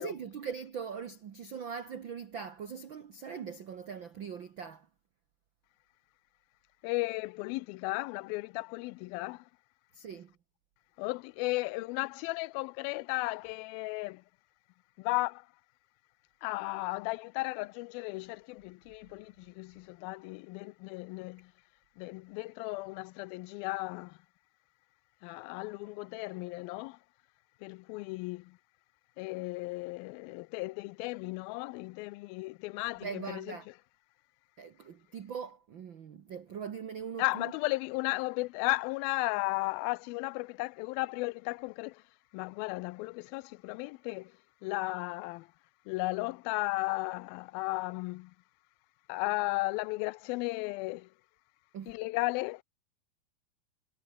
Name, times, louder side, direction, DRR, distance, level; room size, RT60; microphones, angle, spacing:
voice 1, 0.0-4.9 9.9-10.3 33.0-33.7 34.6-37.5 51.7-51.9, right 7 dB, 75° right, 1.1 m, -41 dB
voice 2, 6.8-9.5 11.0-14.2 15.0-15.5 16.4-21.5 22.0-24.2 25.2-27.0 27.6-28.6 29.2-33.6 37.2-42.0 42.3-44.4 44.6-45.5 45.9-48.3 49.1-51.1 51.9-52.6, left 22 dB, 90° left, 2.4 m, -35 dB
omnidirectional pair, 4.2 m